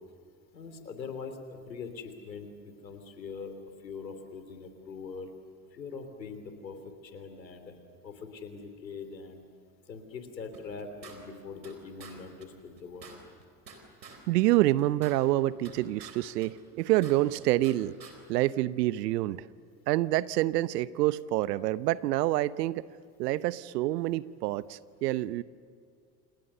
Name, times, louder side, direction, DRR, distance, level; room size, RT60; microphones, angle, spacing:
voice 1, 0.5-3.6 3.8-5.3 5.7-7.7 8.0-9.4 9.9-13.2, left 5 dB, 90° left, 8 dB, 3.3 m, -42 dB
sound 1, 10.5-11.7 12.0-12.1 12.4-12.5 12.8-14.2 14.5-16.1 16.4-17.7 18.0-18.1, right 5 dB, 90° right, 4.2 m, -49 dB
voice 2, 14.3-17.9 18.3-19.4 19.9-22.9 23.2-25.4, right 16 dB, 70° right, 17 dB, 1.0 m, -27 dB
29.0 x 28.0 x 6.9 m, 2.2 s
hypercardioid pair, 75°, 49 cm